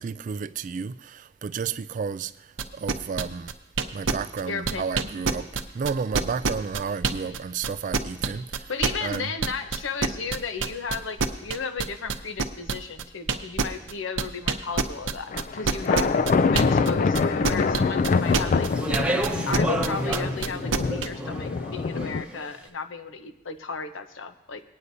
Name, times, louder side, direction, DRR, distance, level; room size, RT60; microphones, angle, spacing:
voice 1, 0.0-3.5 3.9-5.5 5.7-8.7 9.0-9.3, right 5 dB, 40° right, 0.3 m, -32 dB
sound 1, 2.6-7.4 7.6-16.9 17.1-21.1, right 5 dB, 80° right, 0.7 m, -26 dB
voice 2, 4.5-5.1 8.7-16.1 16.5-18.7 19.5-24.6, left 5 dB, 85° left, 0.8 m, -34 dB
sound 2, 15.3-22.2, left 4 dB, 45° left, 0.3 m, -25 dB
Speech, 18.1-22.4, right 1 dB, 5° right, 0.8 m, -31 dB
19.5 x 9.6 x 2.7 m
head